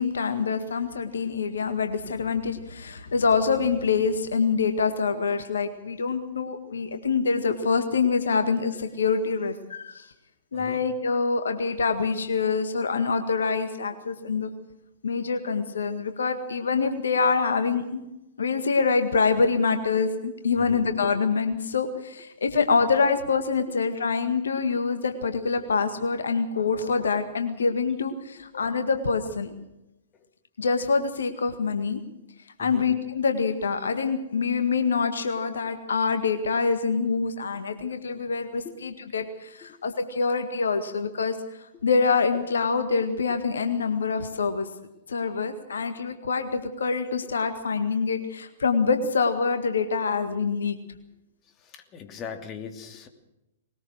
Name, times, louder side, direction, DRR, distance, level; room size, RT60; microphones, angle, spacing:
voice 1, 0.0-10.1 10.5-14.5 15.0-18.0 18.4-29.5 30.6-32.0 32.6-41.4 41.8-44.7 45.1-50.8, left 5 dB, 70° left, 8 dB, 1.9 m, -25 dB
voice 2, 10.5-10.8 20.5-20.8 24.7-24.8 30.1-30.3 32.6-32.9 38.6-38.8 39.6-39.8 51.4-53.1, left 7 dB, 30° left, 6 dB, 2.8 m, -41 dB
21.0 x 19.5 x 6.4 m, 0.91 s
figure-of-eight pair, 110°, 0 cm